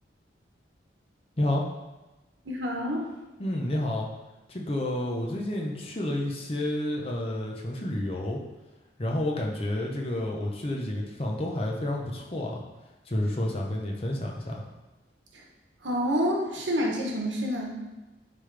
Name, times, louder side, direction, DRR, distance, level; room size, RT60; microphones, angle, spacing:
voice 1, 2.4-3.1 15.3-15.4 15.8-17.8, equal, 90° right, -1 dB, 1.2 m, -28 dB
voice 2, 3.4-4.1 4.5-8.4 9.0-12.6 13.1-14.6, left 1 dB, 30° left, -1 dB, 0.8 m, -30 dB
9.3 x 3.4 x 3.4 m, 1.1 s
head